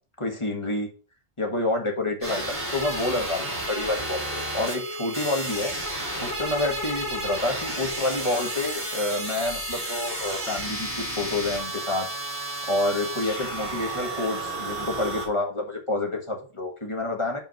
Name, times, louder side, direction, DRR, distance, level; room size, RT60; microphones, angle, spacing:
voice 1, 0.2-0.9 1.4-5.7 6.2-12.1 12.7-17.4, left 2 dB, 30° left, 2 dB, 1.7 m, -28 dB
sound 1, 2.2-15.3, right 1 dB, 10° right, 2.7 m, -32 dB
sound 2, 2.7-10.9, right 5 dB, 85° right, 1.2 m, -45 dB
5.4 x 5.0 x 5.7 m, 0.37 s
omnidirectional pair, 1.1 m